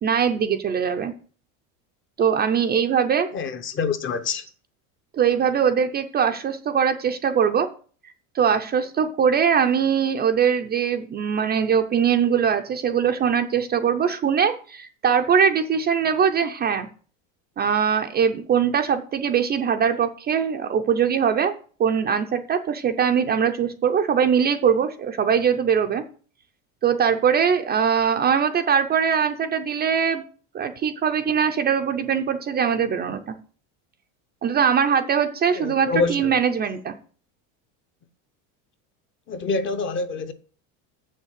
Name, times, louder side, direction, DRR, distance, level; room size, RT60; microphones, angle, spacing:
voice 1, 0.0-1.1 2.2-3.3 5.1-7.7 8.3-16.9 17.6-21.5 21.8-26.0 26.8-30.2 30.5-33.3 34.4-36.9, right 7 dB, 25° right, 0.5 m, -21 dB
voice 2, 3.3-4.5 35.5-36.3 39.3-40.3, left 4 dB, 30° left, 0.8 m, -26 dB
7.1 x 6.4 x 7.4 m
cardioid pair, 145°, 40 cm